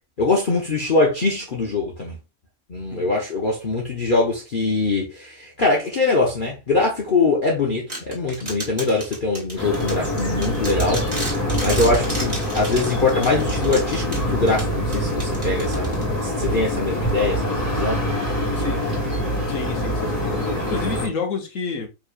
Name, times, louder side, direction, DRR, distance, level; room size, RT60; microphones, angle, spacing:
voice 1, 0.2-2.2 2.7-18.0, left 3 dB, 40° left, 0.9 m, -23 dB
sound 1, 7.9-16.4, right 1 dB, 25° right, 1.9 m, -33 dB
sound 2, 9.6-21.1, equal, 10° right, 2.4 m, -24 dB
voice 2, 18.5-18.9 19.5-20.2 20.7-21.9, left 4 dB, 60° left, 1.2 m, -29 dB
4.9 x 3.1 x 2.4 m
omnidirectional pair, 1.6 m